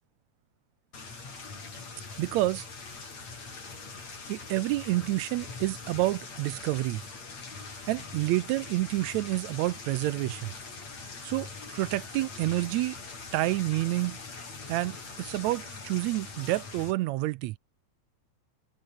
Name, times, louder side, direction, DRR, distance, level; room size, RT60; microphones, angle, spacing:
sound 1, 0.9-16.9, left 4 dB, 65° left, 7.0 m, -42 dB
voice 1, 2.2-2.6 4.3-7.0 7.9-10.5 11.2-13.0 13.3-14.2 14.7-17.5, right 18 dB, 80° right, 1.8 m, -29 dB
omnidirectional pair, 3.4 m